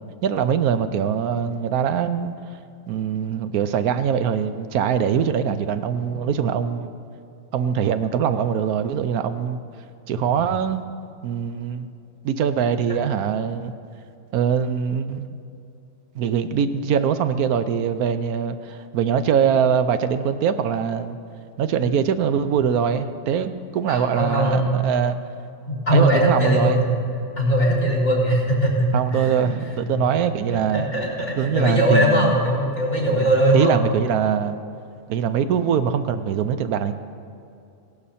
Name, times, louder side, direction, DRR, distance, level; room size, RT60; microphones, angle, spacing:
voice 1, 0.2-2.3 2.9-6.9 7.5-9.6 10.1-10.8 11.2-11.9 12.2-13.7 14.3-15.3 16.1-21.2 21.6-25.2 25.9-26.8 28.9-30.9 31.4-32.3 33.5-34.6 35.1-36.9, right 7 dB, 85° right, 11 dB, 1.2 m, -22 dB
voice 2, 23.9-24.8 25.7-27.0 27.4-29.5 29.9-30.0 30.5-33.8, right 1 dB, 50° left, -3 dB, 4.2 m, -20 dB
17.0 x 12.0 x 4.3 m, 2.6 s
omnidirectional pair, 1.5 m